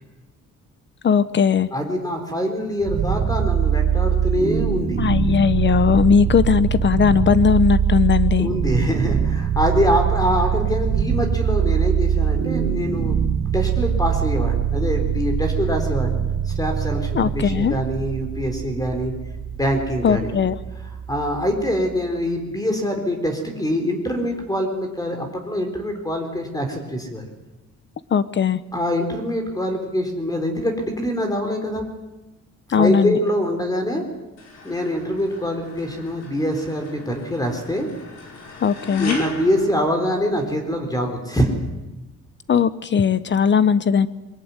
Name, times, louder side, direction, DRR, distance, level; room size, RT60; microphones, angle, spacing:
voice 1, 1.0-1.7 5.0-8.5 17.1-17.7 20.0-20.6 28.1-28.6 32.7-33.2 38.6-39.2 42.5-44.1, left 7 dB, 40° left, 15 dB, 0.9 m, -18 dB
voice 2, 1.7-5.0 8.4-13.2 13.5-16.2 16.5-19.1 19.6-20.3 21.1-27.2 28.7-31.9 32.8-34.0 34.6-37.9 38.9-41.5, equal, 15° left, 5 dB, 3.9 m, -24 dB
sound 1, 2.8-21.9, right 8 dB, 80° right, 3.0 m, -23 dB
sound 2, 34.4-40.7, left 3 dB, 65° left, 5.7 m, -39 dB
22.5 x 19.0 x 9.6 m, 1.0 s
cardioid pair, 130°, 29 cm